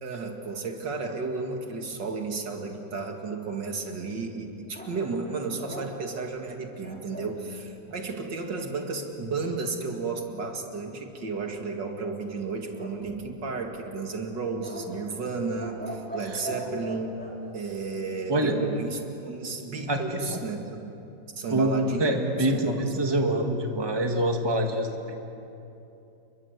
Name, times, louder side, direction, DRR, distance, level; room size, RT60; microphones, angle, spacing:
voice 1, 0.0-17.2 17.5-20.9 21.4-22.2 22.5-23.0, right 4 dB, 75° right, 3 dB, 2.8 m, -33 dB
sound 1, 4.7-7.4 12.7-13.6 14.6-17.4, right 1 dB, 5° left, 3.5 m, -41 dB
voice 2, 19.9-20.4 21.5-25.1, right 1 dB, 15° right, 3 dB, 2.0 m, -26 dB
29.5 x 22.5 x 8.2 m, 2.8 s
omnidirectional pair, 2.0 m